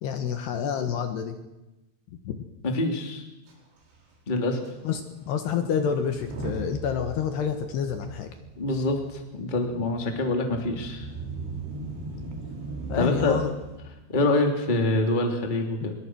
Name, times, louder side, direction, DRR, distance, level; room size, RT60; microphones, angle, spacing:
voice 1, 0.0-1.4 2.2-2.3 4.8-8.3 12.9-13.5, left 7 dB, 65° left, 7 dB, 3.2 m, -28 dB
voice 2, 2.6-3.2 4.3-4.6 8.6-11.1 12.9-13.4 14.1-15.9, left 2 dB, 15° left, 3 dB, 2.2 m, -25 dB
Motor vehicle (road) / Engine starting / Accelerating revving vroom, 3.5-3.6 3.8-4.0 4.6-4.7 6.0-13.8, right 3 dB, 80° right, 7.3 m, -38 dB
25.0 x 22.5 x 6.3 m, 1.0 s
omnidirectional pair, 5.6 m